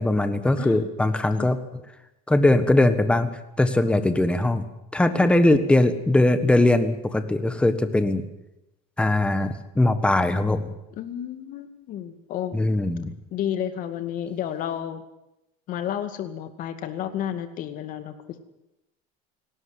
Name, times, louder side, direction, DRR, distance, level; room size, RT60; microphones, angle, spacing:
voice 1, 0.0-1.6 2.3-3.3 3.6-4.6 4.9-8.3 9.0-10.7 12.5-13.1, left 2 dB, 5° left, 10 dB, 1.5 m, -20 dB
voice 2, 0.6-0.9 1.3-1.5 3.8-4.1 5.1-5.3 11.0-12.6 13.3-15.0 15.7-18.4, left 10 dB, 45° left, 9 dB, 2.3 m, -31 dB
19.0 x 17.5 x 9.8 m, 0.90 s
cardioid pair, 150°, 19 cm